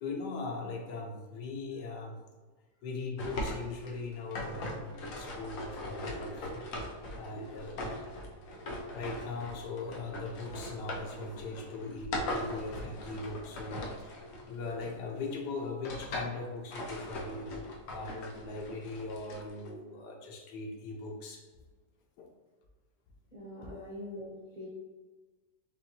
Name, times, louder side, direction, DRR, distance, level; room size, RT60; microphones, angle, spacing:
voice 1, 0.0-2.2 2.8-6.6 7.1-8.3 8.9-13.8 14.5-21.4 22.2-22.3 23.6-23.8, left 3 dB, 90° left, 0 dB, 1.3 m, -40 dB
sound 1, 3.2-15.1 15.6-16.4 16.7-19.7, left 1 dB, 65° left, 1.0 m, -40 dB
voice 2, 23.3-24.7, left 1 dB, 30° right, -7 dB, 1.1 m, -43 dB
5.4 x 2.4 x 2.8 m, 1.3 s
omnidirectional pair, 1.7 m